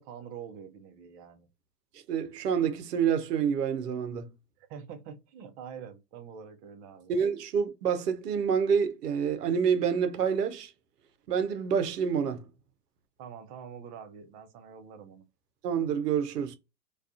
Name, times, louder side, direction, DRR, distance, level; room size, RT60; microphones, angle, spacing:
voice 1, 0.0-1.5 4.6-7.2 13.2-15.3, right 7 dB, 30° right, 0.5 m, -45 dB
voice 2, 2.1-4.3 7.1-10.7 11.3-12.5 15.6-16.6, right 7 dB, 80° right, 0.7 m, -27 dB
2.3 x 2.3 x 2.3 m
hypercardioid pair, 100°, 47 cm